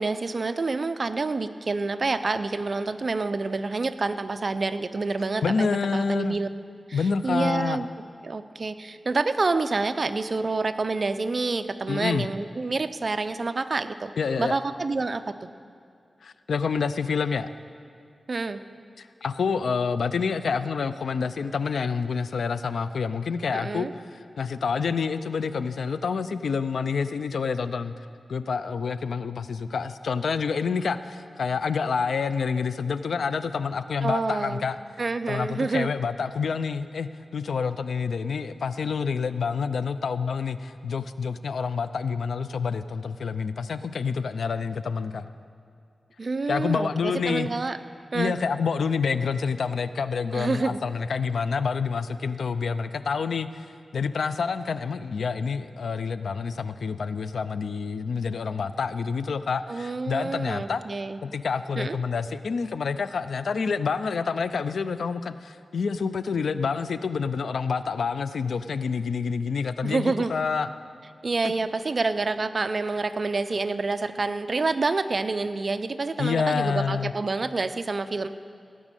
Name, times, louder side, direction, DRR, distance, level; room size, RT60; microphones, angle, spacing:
voice 1, 0.0-6.5 6.9-7.9 8.2-14.1 14.4-15.5 18.3-18.6 23.5-23.9 34.0-34.6 35.0-35.9 46.2-47.8 48.1-48.3 50.3-50.8 59.7-61.2 61.8-62.0 69.8-70.3 71.2-78.3, right 3 dB, 50° right, 10 dB, 0.6 m, -28 dB
voice 2, 5.4-6.4 6.9-7.8 11.9-12.3 14.2-14.5 16.2-17.5 19.0-27.9 28.3-34.8 35.3-45.3 46.5-47.5 48.1-53.7 53.9-60.8 61.2-70.7 76.2-77.1, left 5 dB, 85° left, 12 dB, 0.4 m, -28 dB
16.0 x 6.2 x 9.0 m, 2.4 s
wide cardioid pair, 80°, 0 cm